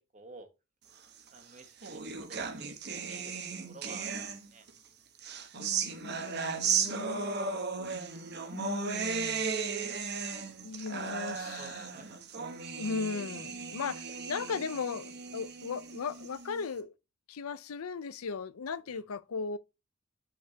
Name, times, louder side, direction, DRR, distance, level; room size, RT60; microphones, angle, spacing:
voice 1, 0.1-0.5 1.3-2.7 3.1-3.3 3.7-4.6 6.6-6.9 7.3-7.6 10.9-11.0 11.3-12.1 18.8-19.0, right 3 dB, 35° right, 1.5 m, -53 dB
sound 1, 1.3-4.7 5.2-16.7, right 5 dB, 50° right, 1.1 m, -36 dB
voice 2, 5.5-7.4 8.5-9.5 10.6-11.8 12.8-16.9 17.3-19.6, left 5 dB, 80° left, 0.6 m, -37 dB
8.4 x 5.8 x 2.8 m
head